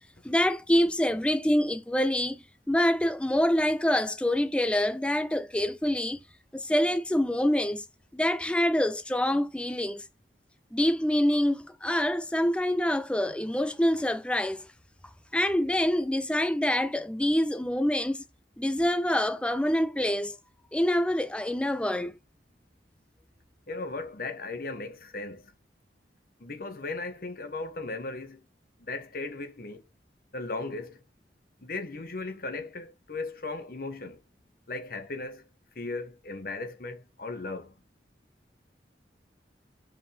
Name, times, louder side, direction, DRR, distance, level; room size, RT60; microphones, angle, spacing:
voice 1, 0.2-2.4 2.7-6.2 6.5-7.8 8.1-10.0 10.7-14.6 15.3-18.2 18.6-20.4 20.7-22.1, left 1 dB, 5° left, 0.5 m, -26 dB
voice 2, 23.7-25.5 26.4-28.4 28.8-29.8 30.3-31.0 31.6-34.2 34.7-35.4 35.7-37.7, left 3 dB, 55° left, 1.2 m, -37 dB
5.5 x 5.5 x 3.4 m
head